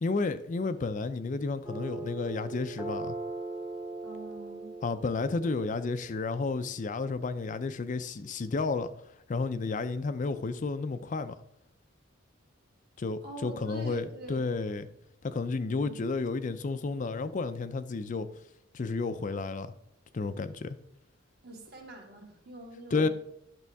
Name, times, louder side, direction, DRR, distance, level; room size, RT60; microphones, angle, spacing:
voice 1, 0.0-3.2 4.8-8.9 9.3-11.3 13.0-14.9 15.2-18.3 18.7-19.7 20.1-20.8 22.9-23.1, left 3 dB, 40° left, 0.4 m, -31 dB
sound 1, 1.6-6.7, right 2 dB, 10° right, 0.8 m, -40 dB
voice 2, 4.0-4.8 13.2-14.5 15.7-16.1 21.4-23.1, right 2 dB, 50° right, 1.9 m, -45 dB
11.0 x 6.1 x 3.4 m
head